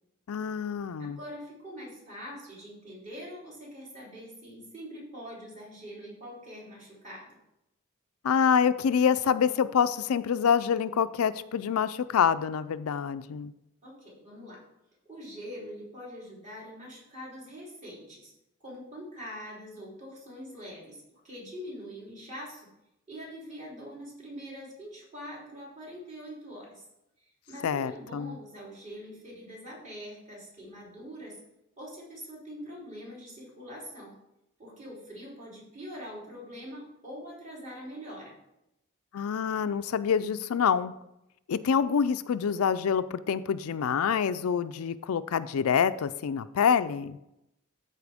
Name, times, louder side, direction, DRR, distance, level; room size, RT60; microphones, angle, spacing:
voice 1, 0.3-1.2 8.2-13.5 27.6-28.4 39.1-40.9 41.5-47.2, left 7 dB, 80° left, 13 dB, 0.4 m, -26 dB
voice 2, 1.0-7.4 13.8-14.6 15.1-18.3 18.6-22.7 23.1-26.8 27.2-31.4 31.8-34.1 34.6-38.3, equal, 35° right, -5 dB, 3.4 m, -44 dB
13.0 x 4.4 x 3.5 m, 0.85 s
head